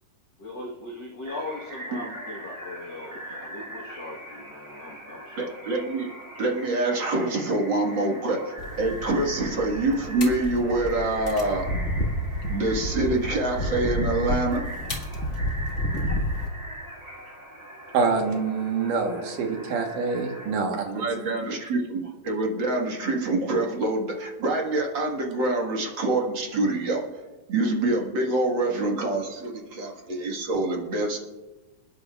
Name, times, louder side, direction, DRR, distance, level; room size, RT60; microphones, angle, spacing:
voice 1, 0.4-5.6, left 2 dB, 80° left, -2 dB, 0.9 m, -39 dB
sound 1, 1.3-20.6, right 1 dB, 90° right, 0.5 m, -41 dB
voice 2, 5.4-6.1 6.4-11.6 12.5-14.6 20.9-27.0 27.5-31.2, right 2 dB, 45° right, 0 dB, 1.7 m, -26 dB
sound 2, 8.6-16.5, equal, 35° left, 1.2 m, -30 dB
voice 3, 17.9-21.0, right 4 dB, 70° right, 2 dB, 2.8 m, -26 dB
28.0 x 10.0 x 2.4 m, 1.1 s
omnidirectional pair, 4.0 m